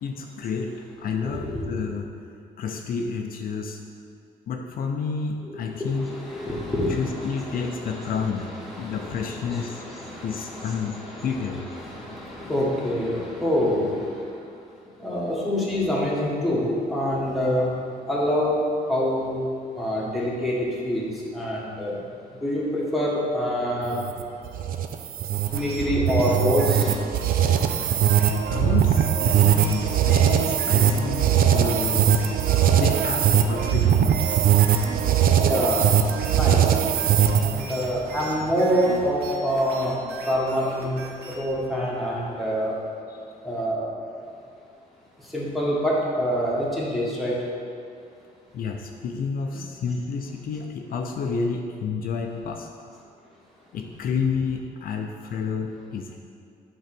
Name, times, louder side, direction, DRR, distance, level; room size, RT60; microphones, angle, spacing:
voice 1, 0.0-2.1 2.6-3.8 4.5-6.1 6.9-9.9 10.2-11.7 16.7-16.9 28.5-32.2 32.7-34.4 43.1-43.2 48.5-52.9 53.7-56.2, left 5 dB, 65° left, 3 dB, 0.6 m, -30 dB
voice 2, 5.5-14.0 15.0-17.7 18.1-18.6 18.9-19.4 19.8-20.5 20.8-21.0 21.3-21.9 22.4-24.0 25.5-26.8 35.3-35.9 36.3-36.6 37.4-40.0 40.3-41.0 41.3-42.8 43.4-43.9 45.3-47.4 49.5-49.6, equal, ahead, -6 dB, 1.6 m, -26 dB
sound 1, 23.8-37.7, right 9 dB, 65° right, 0.5 m, -20 dB
sound 2, 25.5-41.6, right 2 dB, 90° right, 1.3 m, -39 dB
8.1 x 3.9 x 6.0 m, 2.4 s
cardioid pair, 145°, 16 cm